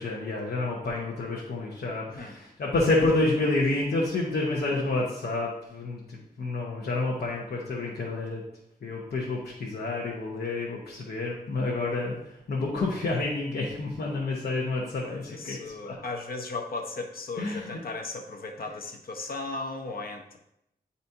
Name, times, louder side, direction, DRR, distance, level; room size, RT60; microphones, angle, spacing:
voice 1, 0.0-8.4 8.8-15.6 15.8-16.0 17.4-17.8, left 2 dB, 90° left, -4 dB, 1.1 m, -29 dB
voice 2, 15.0-20.4, left 3 dB, 65° left, 3 dB, 0.9 m, -36 dB
9.3 x 4.2 x 2.7 m, 0.81 s
wide cardioid pair, 105°, 16 cm